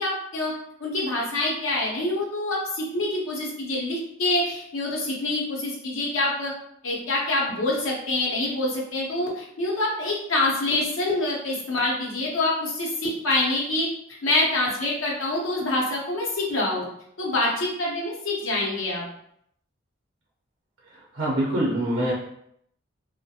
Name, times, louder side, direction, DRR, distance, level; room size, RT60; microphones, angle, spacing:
voice 1, 0.0-6.5 6.8-13.9 14.2-16.9 17.2-19.0, left 2 dB, 80° left, -3 dB, 0.7 m, -26 dB
voice 2, 21.1-22.1, right 1 dB, 65° right, -5 dB, 0.6 m, -24 dB
2.3 x 2.1 x 2.7 m, 0.72 s
head